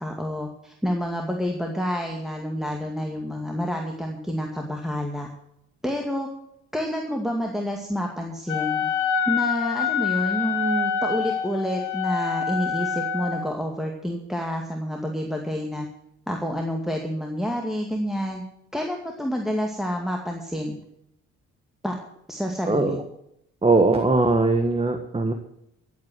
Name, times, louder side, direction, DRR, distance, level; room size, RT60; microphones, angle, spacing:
voice 1, 0.0-5.3 5.8-6.3 6.7-8.8 9.3-15.9 16.3-18.4 18.7-20.8 21.8-21.9 22.3-23.0, equal, ahead, 1 dB, 2.2 m, -28 dB
Wind instrument woodwind instrument, 8.5-13.5, left 6 dB, 75° left, 2.6 m, -26 dB
voice 2, 22.7-23.0 23.6-25.3, right 3 dB, 20° right, 7 dB, 1.5 m, -20 dB
14.0 x 8.6 x 7.8 m, 0.77 s
cardioid pair, 90°, 30 cm